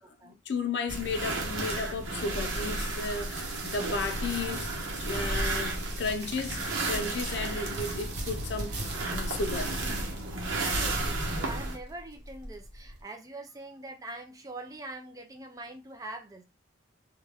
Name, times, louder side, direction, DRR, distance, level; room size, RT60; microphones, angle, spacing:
voice 1, 0.2-4.7 5.0-8.8 9.1-9.7, left 4 dB, 65° left, 0.4 m, -34 dB
sound 1, 0.9-11.8, right 2 dB, 90° right, 0.7 m, -33 dB
sound 2, 2.0-13.0, right 2 dB, 60° right, 0.9 m, -40 dB
voice 2, 10.5-16.5, right 2 dB, 20° right, 0.4 m, -43 dB
2.2 x 2.0 x 3.3 m
head